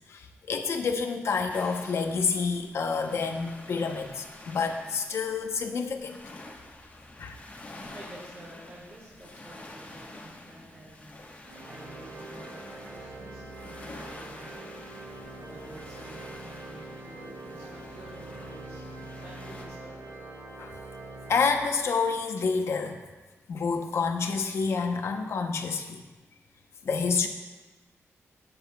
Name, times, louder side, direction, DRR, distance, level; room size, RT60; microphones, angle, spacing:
voice 1, 0.1-6.2 7.2-7.4 20.6-20.7 21.3-23.0 23.5-26.0 26.8-27.3, left 5 dB, 65° left, 5 dB, 0.8 m, -28 dB
sound 1, 1.5-19.6, left 2 dB, 30° left, 1.1 m, -48 dB
voice 2, 7.9-11.1 11.7-12.5 12.9-14.6 15.4-18.8 19.1-20.1, right 1 dB, 55° right, -7 dB, 3.3 m, -49 dB
Organ, 11.4-22.1, right 2 dB, 80° right, 1.6 m, -44 dB
16.5 x 8.0 x 2.3 m, 1.2 s
wide cardioid pair, 160°, 5 cm